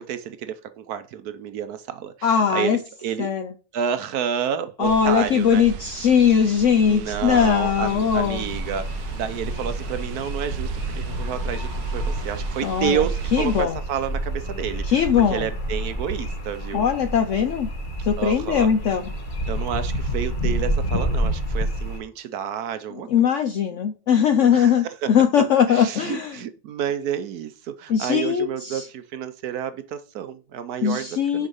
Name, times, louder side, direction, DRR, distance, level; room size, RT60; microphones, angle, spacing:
voice 1, 0.0-2.3 2.5-2.7 3.0-3.3 3.7-5.6 6.9-14.8 15.3-16.8 18.2-18.7 19.5-23.1 24.4-24.7 25.0-25.1 25.7-31.1 31.3-31.5, right 9 dB, 70° right, 1.1 m, -30 dB
voice 2, 2.2-2.8 3.2-3.5 4.8-8.4 12.6-13.8 14.8-15.5 16.7-17.7 18.0-19.1 22.9-26.4 27.9-28.9 30.8-31.5, left 7 dB, 70° left, 0.7 m, -20 dB
sound 1, 4.8-13.7, right 9 dB, 90° right, 1.3 m, -36 dB
sound 2, 7.8-22.0, equal, 35° left, 1.1 m, -29 dB
6.2 x 4.9 x 5.4 m
omnidirectional pair, 1.9 m